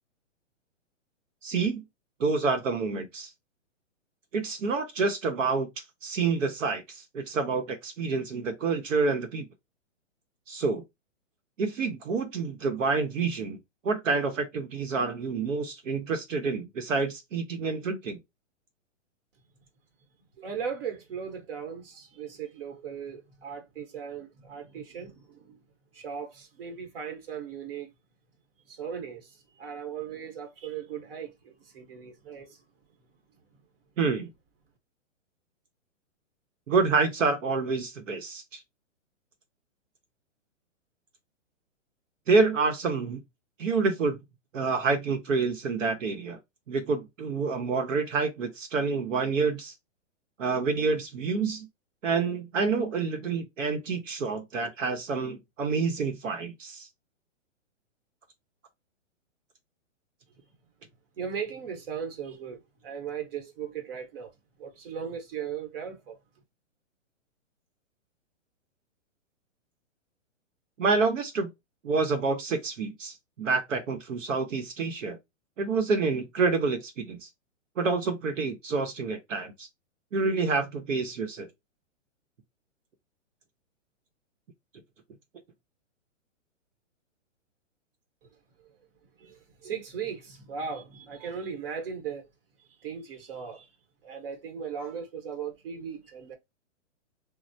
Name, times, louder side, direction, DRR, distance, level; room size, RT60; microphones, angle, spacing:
voice 1, 1.4-1.8 2.2-3.3 4.3-5.7 6.0-9.4 10.5-10.8 11.6-13.6 13.8-18.2 34.0-34.3 36.7-38.6 42.3-43.2 43.6-44.2 44.5-46.4 46.7-49.7 50.4-51.7 52.0-56.9 70.8-71.5 71.8-75.2 75.6-77.3 77.8-79.7 80.1-81.5, right 4 dB, 75° right, 0.9 m, -28 dB
voice 2, 20.4-25.6 25.9-27.9 28.7-32.6 61.2-64.3 64.6-66.2 88.6-88.7 89.2-92.3 92.8-93.7 94.0-96.4, right 7 dB, 45° right, 1.0 m, -38 dB
3.1 x 2.1 x 2.6 m
hypercardioid pair, 165°, 38 cm